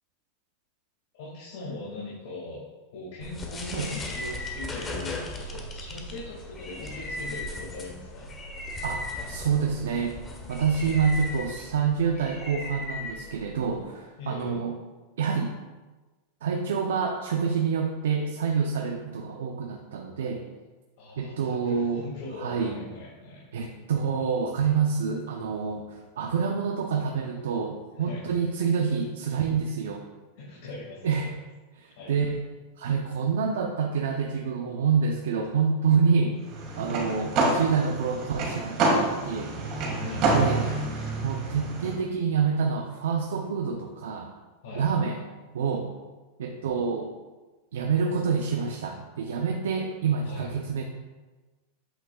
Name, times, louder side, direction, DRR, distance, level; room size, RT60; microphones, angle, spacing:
voice 1, 1.2-2.6 2.9-8.3 14.2-14.6 21.0-23.4 28.1-28.3 30.4-31.4 32.0-32.1 39.9-40.9 44.6-44.9 50.2-50.5, left 2 dB, 70° left, -6 dB, 2.0 m, -40 dB
sound 1, 3.2-13.8, left 2 dB, 20° left, 1.0 m, -37 dB
voice 2, 8.8-10.2 10.5-14.8 15.2-15.5 16.4-20.4 21.2-22.8 23.5-30.0 31.0-31.3 31.8-32.4 32.8-36.4 36.8-39.6 40.3-40.7 41.2-44.3 44.7-45.2 45.5-45.9 46.4-47.1 47.7-50.8, right 6 dB, 90° right, 2 dB, 0.6 m, -27 dB
sound 2, 36.5-41.9, right 2 dB, 45° right, 1.8 m, -27 dB
8.0 x 6.3 x 2.3 m, 1.3 s
supercardioid pair, 135°, 0 cm